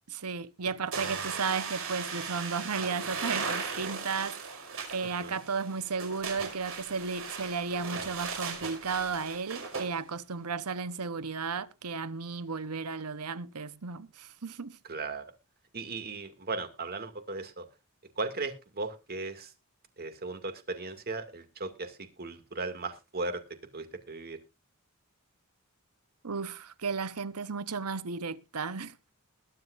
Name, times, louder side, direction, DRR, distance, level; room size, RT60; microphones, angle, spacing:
voice 1, 0.1-14.8 26.2-29.1, right 5 dB, 80° right, 1.0 m, -34 dB
sound 1, 0.9-9.9, right 5 dB, 65° right, 5.1 m, -37 dB
voice 2, 14.9-15.2 15.7-17.6 18.2-19.5 20.0-23.4 23.7-24.4, right 3 dB, 45° right, 2.3 m, -37 dB
21.5 x 9.2 x 2.5 m
head